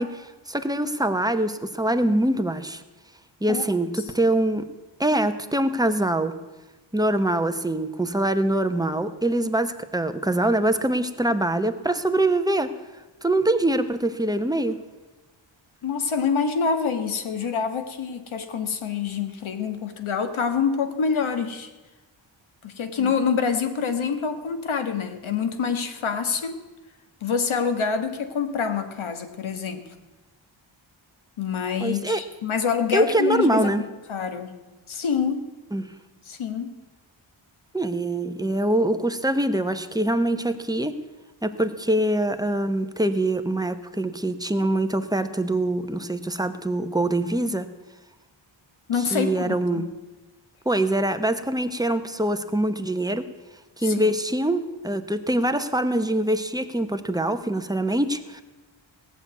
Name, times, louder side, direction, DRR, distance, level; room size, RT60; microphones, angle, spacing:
voice 1, 0.0-2.8 3.4-4.7 5.0-6.3 6.9-12.7 13.2-14.8 23.0-23.1 31.8-32.2 32.9-33.8 35.7-35.9 37.7-40.9 41.4-47.7 49.1-49.9 50.7-53.2 53.8-58.4, right 1 dB, 10° right, 8 dB, 0.8 m, -24 dB
voice 2, 15.8-21.7 22.6-26.5 27.2-29.8 31.4-33.7 34.1-34.6 34.9-35.5 36.3-36.8 48.9-49.9 53.8-54.0, left 6 dB, 80° left, 8 dB, 1.5 m, -26 dB
17.5 x 7.1 x 9.3 m, 1.2 s
wide cardioid pair, 135°, 47 cm